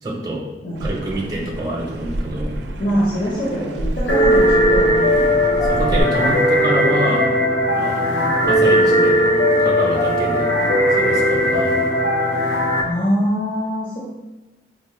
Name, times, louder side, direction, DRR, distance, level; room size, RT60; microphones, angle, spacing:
voice 1, 0.0-0.4 0.8-2.5 5.6-7.3 7.7-8.0 8.5-9.2 9.6-10.5 10.9-11.8, right 1 dB, 20° right, -2 dB, 0.5 m, -26 dB
sound 1, 0.7-6.0, right 1 dB, 80° right, 0.4 m, -28 dB
voice 2, 2.8-5.4 8.1-8.3 12.8-14.0, equal, 50° left, -7 dB, 0.7 m, -23 dB
sound 2, 4.1-12.8, equal, 85° left, 0.6 m, -17 dB
5.0 x 2.0 x 3.0 m, 1.1 s
head